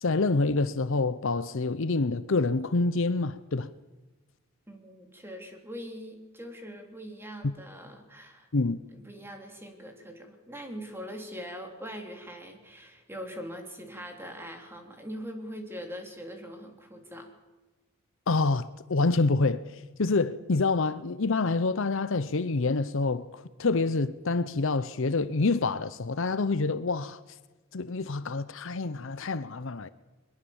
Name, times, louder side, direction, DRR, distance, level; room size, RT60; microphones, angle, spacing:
voice 1, 0.0-3.7 7.4-7.5 8.5-8.8 18.3-27.2 27.7-29.9, left 3 dB, 60° left, 0.7 m, -27 dB
voice 2, 4.7-8.5 8.9-17.3, equal, 10° right, 3.2 m, -42 dB
22.0 x 21.5 x 7.2 m
head